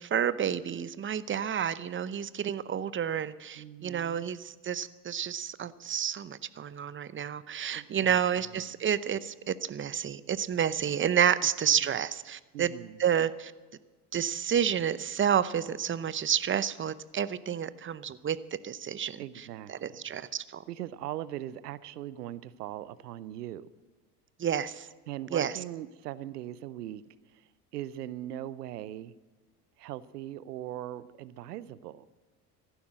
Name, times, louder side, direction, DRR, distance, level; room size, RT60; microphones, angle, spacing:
voice 1, 0.0-12.7 13.0-13.5 14.1-18.4 18.6-20.6 24.4-24.9 25.3-25.5, right 8 dB, 25° right, 16 dB, 0.7 m, -30 dB
voice 2, 3.6-4.3 7.7-8.2 11.7-11.9 12.5-13.0 19.2-20.0 20.7-23.7 25.1-27.0 27.3-27.5 27.7-29.1 29.8-32.1, right 13 dB, 85° right, 18 dB, 0.7 m, -40 dB
15.0 x 12.0 x 7.6 m, 1.3 s
hypercardioid pair, 70°, 46 cm